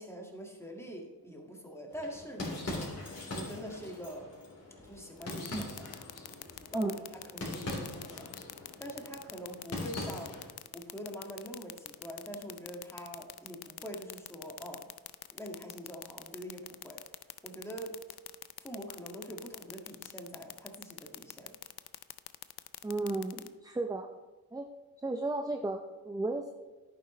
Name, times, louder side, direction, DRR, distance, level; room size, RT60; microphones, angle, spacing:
voice 1, 0.0-2.9 3.3-4.3 4.8-5.9 6.7-6.9 7.3-8.3 8.8-10.4 10.7-14.9 15.3-17.0 17.4-18.0 18.6-21.6, equal, 5° left, 0 dB, 1.8 m, -44 dB
sound 1, 1.9-10.6, left 2 dB, 40° left, 3.4 m, -42 dB
sound 2, 5.2-23.5, left 14 dB, 90° left, 0.5 m, -43 dB
voice 2, 22.8-24.1 24.5-24.7 25.0-26.5, right 2 dB, 10° right, 5 dB, 0.5 m, -34 dB
11.0 x 8.9 x 3.1 m, 1.2 s
cardioid pair, 90°, 37 cm